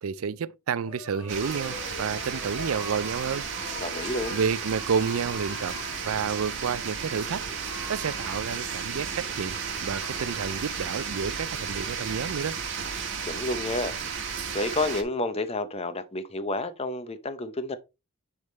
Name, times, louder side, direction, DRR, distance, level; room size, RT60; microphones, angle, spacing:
voice 1, 0.0-3.4 4.3-5.8 6.0-7.4 7.9-9.6 9.8-12.6, right 6 dB, 70° right, 0.4 m, -30 dB
sound 1, 0.8-11.8, left 2 dB, 80° left, 1.7 m, -44 dB
sound 2, 1.3-15.0, right 6 dB, 55° right, 1.7 m, -34 dB
voice 2, 3.8-4.4 13.2-14.0 14.5-17.8, left 2 dB, 25° left, 0.7 m, -30 dB
9.7 x 3.5 x 4.2 m
head